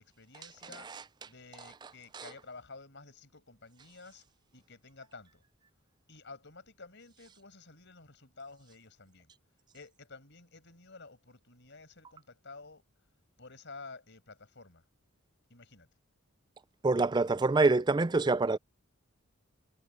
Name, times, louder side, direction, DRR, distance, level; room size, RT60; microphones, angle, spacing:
voice 1, 0.0-4.2 4.5-5.4 6.1-9.3 9.7-12.8 13.4-14.8 15.5-15.9, left 3 dB, 55° left, 5.6 m, -51 dB
voice 2, 16.8-18.6, right 3 dB, 20° right, 0.4 m, -25 dB
head